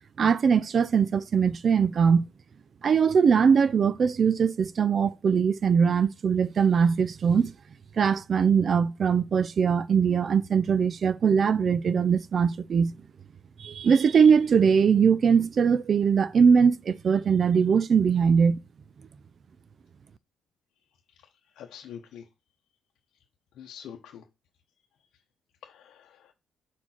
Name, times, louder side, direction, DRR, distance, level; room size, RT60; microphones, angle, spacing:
voice 1, 0.2-2.3 2.8-7.5 8.0-12.9 13.6-18.6, right 6 dB, 50° right, 0.3 m, -21 dB
voice 2, 21.6-22.2 23.6-24.2 25.6-26.3, left 8 dB, 75° left, 0.8 m, -45 dB
4.4 x 4.3 x 5.8 m
cardioid pair, 90°, 0 cm